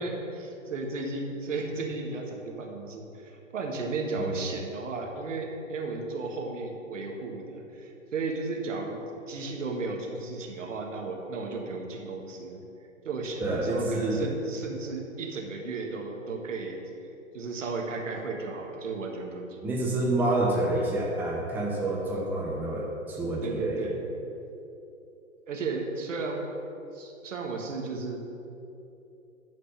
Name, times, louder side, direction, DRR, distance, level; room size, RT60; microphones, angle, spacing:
voice 1, 0.0-12.6 13.0-16.8 17.3-20.0 23.4-24.0 25.5-26.5 26.9-28.2, right 3 dB, 65° right, 1 dB, 1.6 m, -34 dB
voice 2, 13.4-14.3 19.6-23.9, right 2 dB, 5° right, -3 dB, 0.9 m, -28 dB
11.0 x 4.2 x 6.8 m, 2.9 s
figure-of-eight pair, 120°, 40 cm